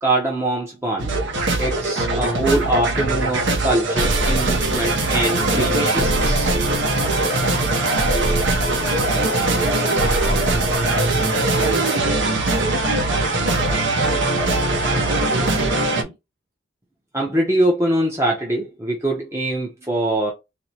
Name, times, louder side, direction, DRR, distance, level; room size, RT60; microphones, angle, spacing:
voice 1, 0.0-1.2 1.6-6.5 17.1-20.3, right 1 dB, 15° right, 0.6 m, -23 dB
sound 1, 1.0-16.0, right 2 dB, 70° right, 0.7 m, -20 dB
voice 2, 8.8-10.9 11.6-14.5 15.0-16.1, right 1 dB, 45° right, 1.5 m, -34 dB
4.2 x 2.1 x 2.8 m
head